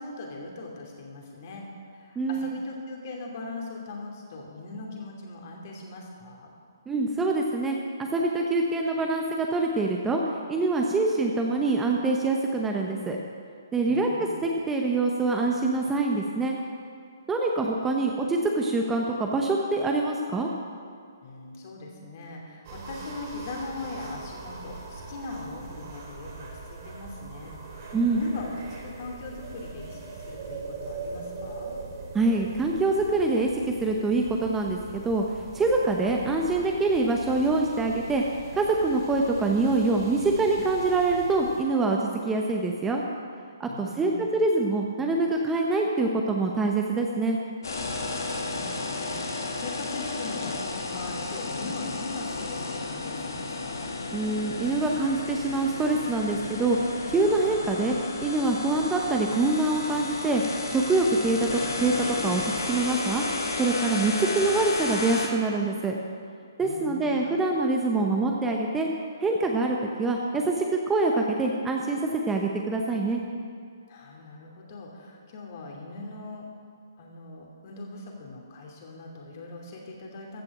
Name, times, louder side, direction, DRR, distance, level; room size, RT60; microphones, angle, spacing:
voice 1, 0.0-6.5 13.9-14.5 21.2-27.6 28.1-28.5 28.8-31.7 43.7-44.3 48.0-53.9 66.6-67.3 73.9-76.4 77.0-80.4, left 2 dB, 45° left, 0 dB, 2.7 m, -40 dB
voice 2, 2.2-2.6 6.9-10.2 10.5-13.2 13.7-16.6 17.3-20.5 27.9-28.2 32.1-35.2 35.5-38.2 38.5-43.0 43.6-47.4 54.1-60.4 60.7-63.2 63.6-66.0 66.6-68.9 69.2-72.0 72.3-73.2, right 3 dB, 10° right, 0 dB, 0.8 m, -25 dB
sound 1, 22.6-41.6, right 3 dB, 40° right, 3.9 m, -41 dB
sound 2, 47.6-65.3, left 3 dB, 70° left, 1.9 m, -33 dB
14.5 x 6.3 x 7.6 m, 2.2 s
hypercardioid pair, 145°, 2 cm